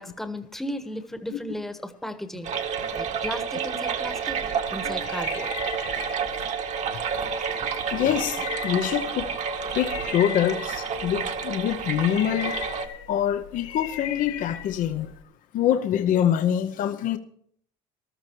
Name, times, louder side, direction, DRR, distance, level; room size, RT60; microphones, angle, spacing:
voice 1, 0.0-2.5 2.9-5.5, left 1 dB, ahead, 1.3 m, -35 dB
sound 1, 2.4-12.9, right 6 dB, 45° right, 1.6 m, -30 dB
sound 2, 4.6-15.2, left 10 dB, 90° left, 1.7 m, -39 dB
voice 2, 7.9-9.3 9.7-12.6 13.1-15.1 15.5-17.2, left 10 dB, 55° left, 0.8 m, -25 dB
14.0 x 12.5 x 4.6 m
supercardioid pair, 105°, 17 cm